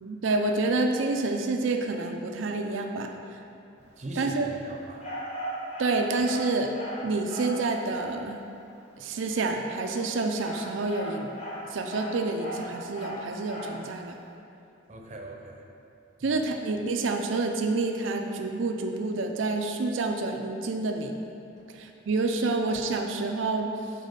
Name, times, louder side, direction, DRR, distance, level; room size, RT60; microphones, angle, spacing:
voice 1, 0.0-3.1 4.2-4.5 5.8-6.7 7.0-8.4 9.0-11.3 11.7-14.1 16.2-21.1 21.8-23.7, right 3 dB, 85° right, 3 dB, 0.5 m, -28 dB
voice 2, 4.0-5.1 14.9-15.7 16.2-16.4 21.6-21.7, right 1 dB, 35° right, 1 dB, 0.7 m, -40 dB
sound 1, 5.0-7.7 9.8-13.8, equal, 30° left, 1.5 m, -37 dB
6.4 x 4.1 x 5.2 m, 2.7 s
head